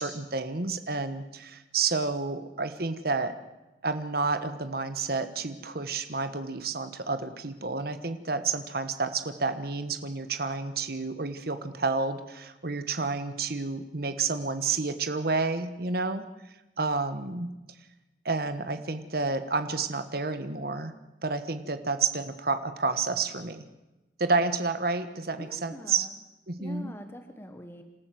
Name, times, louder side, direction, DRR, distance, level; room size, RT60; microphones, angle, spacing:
voice 1, 0.0-3.3 3.8-16.2 16.8-17.5 18.2-20.9 21.2-23.6 24.2-26.0 26.5-26.9, right 4 dB, 55° right, 9 dB, 1.3 m, -30 dB
voice 2, 25.4-26.2 26.6-27.8, equal, 15° left, 6 dB, 1.3 m, -44 dB
27.0 x 13.5 x 7.7 m, 1.0 s
head